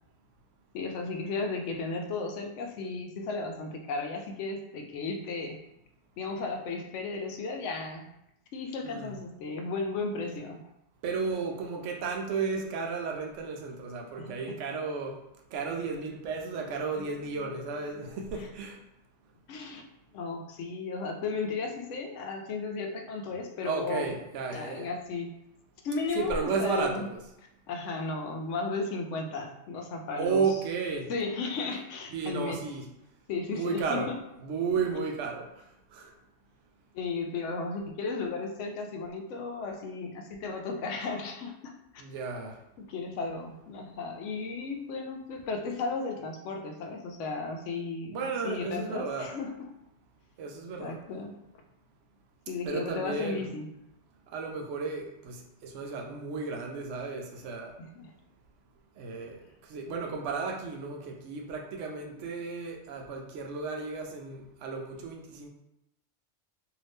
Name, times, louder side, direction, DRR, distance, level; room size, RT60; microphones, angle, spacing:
voice 1, 0.7-5.6 6.2-8.1 8.5-10.7 14.2-14.6 16.9-18.1 18.4-18.5 19.5-19.8 20.1-24.1 24.5-25.3 25.8-27.1 27.7-30.5 31.1-32.6 33.3-34.2 36.9-42.0 42.8-49.7 50.8-51.4 52.5-53.7 57.8-58.1, left 3 dB, 75° left, 3 dB, 0.9 m, -35 dB
voice 2, 8.8-9.2 11.0-15.2 15.5-18.8 23.6-24.9 26.1-27.2 30.2-31.1 32.1-32.9 33.5-34.1 34.4-36.1 42.0-42.6 48.1-49.3 50.4-51.0 52.6-53.5 54.3-57.8 59.0-65.5, right 5 dB, 75° right, 1 dB, 0.9 m, -33 dB
2.7 x 2.7 x 3.4 m, 0.84 s
omnidirectional pair, 1.3 m